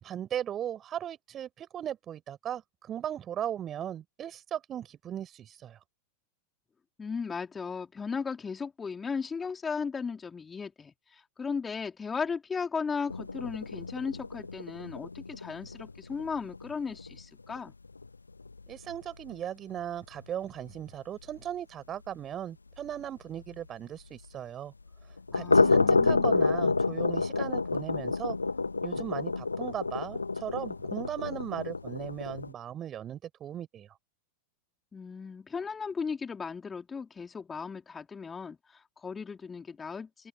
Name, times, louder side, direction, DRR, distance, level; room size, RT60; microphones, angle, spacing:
voice 1, 0.0-5.8 18.7-24.7 25.3-28.4 28.8-33.9, right 10 dB, 25° right, 5.3 m, -37 dB
voice 2, 7.0-17.7 25.3-26.4 34.9-40.3, left 5 dB, 15° left, 3.6 m, -36 dB
sound 1, 13.1-19.0 19.3-19.4 19.8-19.9 20.2-20.3 20.7-20.8 23.6-23.7 25.1-32.5, left 3 dB, 80° left, 1.3 m, -29 dB
open air
figure-of-eight pair, 90°, 0 cm